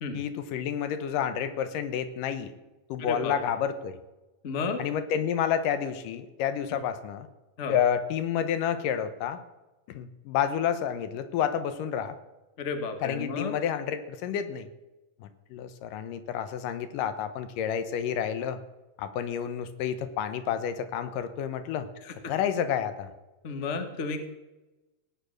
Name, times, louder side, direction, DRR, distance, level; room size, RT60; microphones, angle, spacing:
voice 1, 0.1-2.5 2.9-4.0 4.8-7.3 7.7-9.4 9.9-12.2 13.0-14.7 15.2-18.6 19.0-21.9 22.3-23.1, left 8 dB, 90° left, 10 dB, 2.6 m, -30 dB
voice 2, 3.0-3.3 4.4-4.8 7.6-7.8 12.6-13.5 22.0-22.1 23.4-24.2, left 4 dB, 60° left, 6 dB, 0.7 m, -32 dB
17.0 x 9.3 x 6.4 m, 1.1 s
omnidirectional pair, 3.7 m